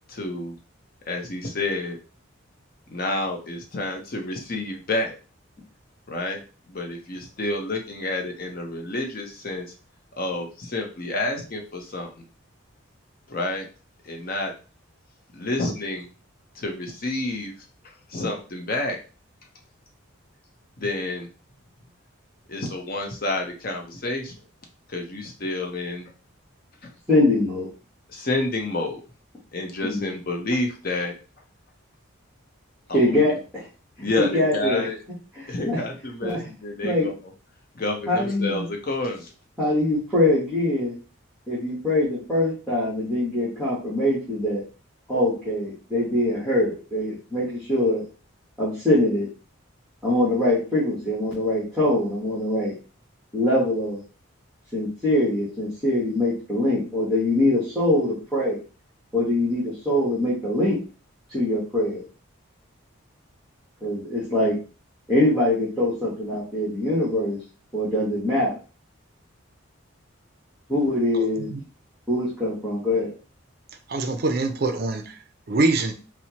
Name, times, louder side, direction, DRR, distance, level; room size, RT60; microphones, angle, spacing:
voice 1, 0.1-0.5 1.1-2.0 2.9-5.2 6.1-6.4 6.7-9.7 10.2-12.2 13.3-13.7 14.0-14.5 15.3-16.1 16.6-17.5 18.1-19.0 20.8-21.3 22.5-24.4 24.9-26.1 26.8-26.9 28.1-29.0 29.5-31.1 32.9-33.4 34.0-35.0 35.5-37.1 37.7-39.3, left 2 dB, 45° left, 2 dB, 0.6 m, -29 dB
voice 2, 27.1-27.7 29.8-30.1 32.9-33.6 34.0-34.9 35.4-35.8 36.2-36.4 36.8-37.1 38.1-38.6 39.6-40.9 41.5-44.6 45.1-48.1 48.6-49.3 50.0-52.7 53.3-54.0 54.7-58.6 59.1-60.8 61.3-62.0 63.8-64.6 65.1-67.4 67.7-68.5 70.7-71.5 72.1-73.1, left 1 dB, ahead, -9 dB, 1.1 m, -23 dB
voice 3, 73.9-75.2 75.5-75.9, right 2 dB, 45° right, 6 dB, 0.5 m, -24 dB
4.2 x 2.1 x 2.8 m, 0.35 s
head